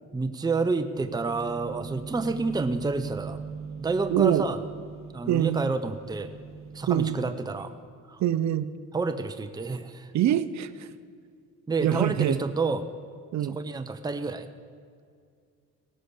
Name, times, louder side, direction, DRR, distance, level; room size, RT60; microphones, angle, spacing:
voice 1, 0.1-3.4 3.8-4.6 5.1-6.3 6.7-7.7 8.1-8.2 8.9-10.1 11.7-12.8 13.4-14.5, right 3 dB, 15° right, 8 dB, 0.6 m, -29 dB
sound 1, 0.9-7.2, right 5 dB, 45° right, 1.0 m, -40 dB
voice 2, 4.1-4.5 5.3-5.7 6.9-7.2 8.2-8.7 10.1-10.9 11.8-12.4 13.3-13.6, right 11 dB, 65° right, 14 dB, 0.6 m, -24 dB
17.5 x 7.6 x 6.5 m, 2.2 s
cardioid pair, 90°, 30 cm